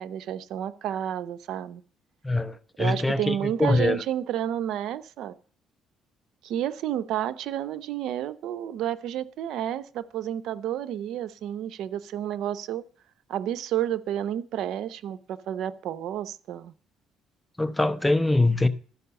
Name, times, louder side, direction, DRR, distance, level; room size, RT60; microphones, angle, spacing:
voice 1, 0.0-1.8 2.8-5.3 6.4-12.8 13.3-16.7, right 11 dB, 75° right, 0.7 m, -30 dB
voice 2, 2.2-4.0 17.6-18.7, left 2 dB, 10° left, 0.8 m, -23 dB
12.5 x 5.5 x 6.9 m
cardioid pair, 105°, 0 cm